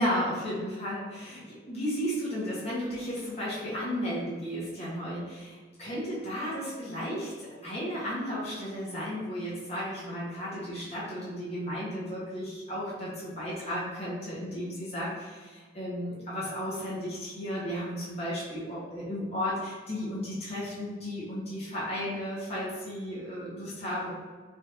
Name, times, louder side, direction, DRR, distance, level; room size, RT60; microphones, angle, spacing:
voice 1, 0.0-24.1, equal, 35° left, -8 dB, 0.9 m, -34 dB
3.2 x 2.6 x 2.9 m, 1.4 s
head